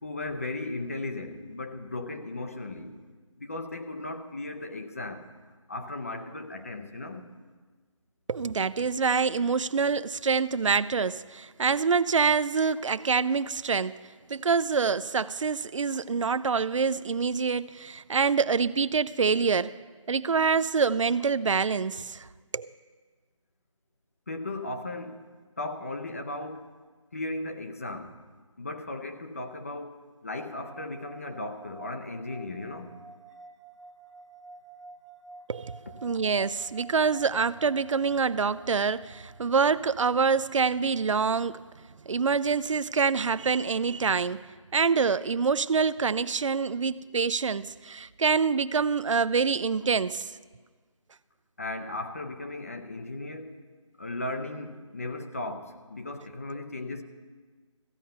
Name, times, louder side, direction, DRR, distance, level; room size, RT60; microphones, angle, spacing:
voice 1, 0.0-3.0 3.4-5.3 5.7-7.3 24.3-25.2 25.6-26.7 27.1-28.1 28.6-32.9 51.6-53.6 54.0-57.0, left 2 dB, 25° left, 0.6 m, -36 dB
voice 2, 8.3-14.0 14.3-19.8 20.1-22.3 22.5-22.7 35.5-41.6 42.1-44.5 44.7-50.3, right 5 dB, 70° right, 0.4 m, -26 dB
sound 1, 30.4-41.7, right 3 dB, 5° right, 0.8 m, -51 dB
15.0 x 9.2 x 5.6 m
figure-of-eight pair, 170°, 17 cm